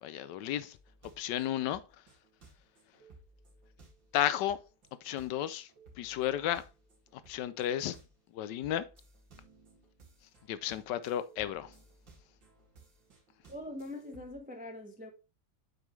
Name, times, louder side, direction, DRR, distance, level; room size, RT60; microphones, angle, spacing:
voice 1, 0.0-0.8 1.2-1.8 4.1-4.6 5.0-5.7 6.0-6.6 7.1-8.0 8.3-8.8 10.5-11.7, left 11 dB, 70° left, 1.2 m, -33 dB
sound 1, 0.7-8.2 8.6-14.4, right 3 dB, 70° right, 2.9 m, -60 dB
voice 2, 13.5-15.1, left 1 dB, 10° right, 0.4 m, -43 dB
8.2 x 5.4 x 3.1 m
omnidirectional pair, 2.1 m